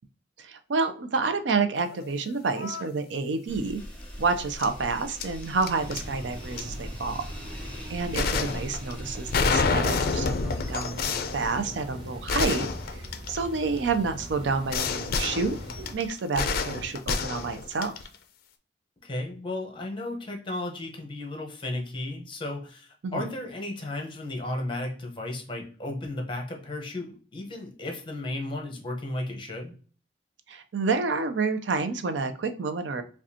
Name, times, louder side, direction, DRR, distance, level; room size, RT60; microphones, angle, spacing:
voice 1, 0.4-3.8 4.2-7.2 7.9-17.9 23.0-23.3 30.5-33.0, right 4 dB, 90° right, 9 dB, 0.5 m, -29 dB
sound 1, 1.9-2.1 2.4-2.9 4.6-4.7 5.2-6.0 6.6-6.7 8.1-13.8 14.7-18.1, left 4 dB, 55° left, 0.4 m, -29 dB
sound 2, 3.5-10.2, equal, 5° left, 1.7 m, -41 dB
sound 3, 5.7-15.9, equal, 30° right, 0.8 m, -42 dB
voice 2, 8.1-8.6 19.0-29.7, left 1 dB, 30° left, 2 dB, 0.8 m, -34 dB
4.9 x 2.3 x 2.8 m, 0.41 s
head